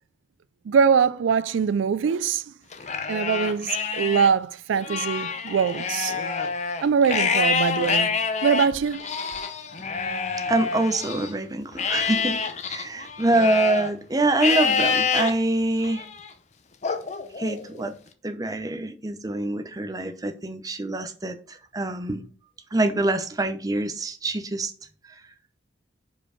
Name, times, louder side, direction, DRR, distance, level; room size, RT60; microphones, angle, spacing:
voice 1, 0.7-2.4 3.1-6.1 6.8-8.1 8.4-9.0, right 6 dB, 85° right, 0.4 m, -22 dB
Livestock farm animals working animals, 2.7-4.3 4.7-11.3 11.8-13.9 14.4-15.3 15.8-16.3 16.8-17.9, left 5 dB, 40° left, 0.6 m, -27 dB
voice 2, 10.5-12.4 12.7-16.1 17.4-17.9 18.2-22.2 22.7-24.7, right 2 dB, 20° right, 0.6 m, -25 dB
5.2 x 4.5 x 4.8 m
head